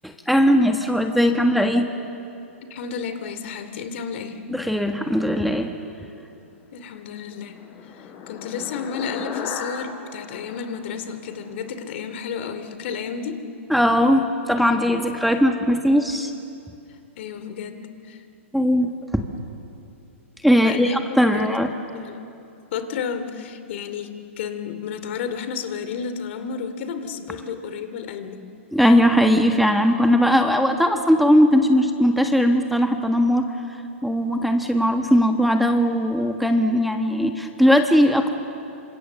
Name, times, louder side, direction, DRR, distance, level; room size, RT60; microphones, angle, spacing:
voice 1, 0.0-1.9 4.5-5.7 13.7-16.3 18.5-19.2 20.4-21.7 28.7-33.4 34.0-38.3, equal, ahead, 4 dB, 1.5 m, -19 dB
voice 2, 2.7-4.4 6.7-7.6 7.9-13.4 17.2-18.2 20.6-21.0 21.3-21.7 21.9-22.3 22.7-28.4, left 6 dB, 60° left, 9 dB, 2.7 m, -32 dB
sound 1, 6.9-11.6, left 6 dB, 40° left, 5.0 m, -36 dB
28.0 x 25.5 x 7.2 m, 2.6 s
hypercardioid pair, 125°, 7 cm